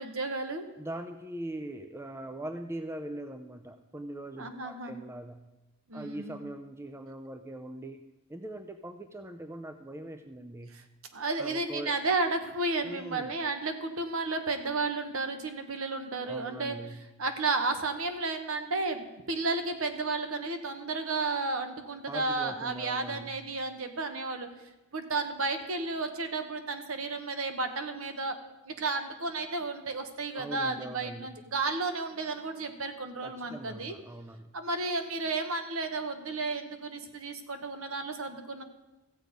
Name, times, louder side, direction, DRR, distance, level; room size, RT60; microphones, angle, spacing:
voice 1, 0.0-0.6 4.4-4.9 5.9-6.4 10.7-10.8 11.1-16.8 17.2-24.5 24.9-28.4 28.6-33.9 34.5-38.6, right 3 dB, 70° right, 7 dB, 1.1 m, -32 dB
voice 2, 0.8-5.4 5.9-8.0 8.3-10.7 11.4-11.9 12.8-13.3 16.2-17.0 22.1-23.4 30.3-31.3 33.2-34.5, right 1 dB, 10° right, 8 dB, 0.4 m, -41 dB
14.5 x 8.0 x 5.2 m, 1.0 s
head